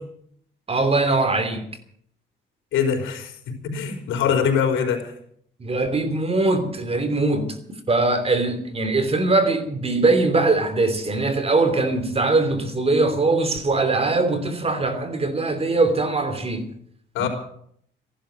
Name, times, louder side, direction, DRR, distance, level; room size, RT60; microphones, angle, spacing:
voice 1, 0.7-1.7 5.6-7.6 7.9-16.7 17.2-17.3, right 3 dB, 30° right, 3.1 m, -21 dB
voice 2, 2.7-5.1 17.1-17.3, left 7 dB, 85° left, 4.3 m, -23 dB
15.0 x 12.0 x 7.7 m
cardioid pair, 90°, 20 cm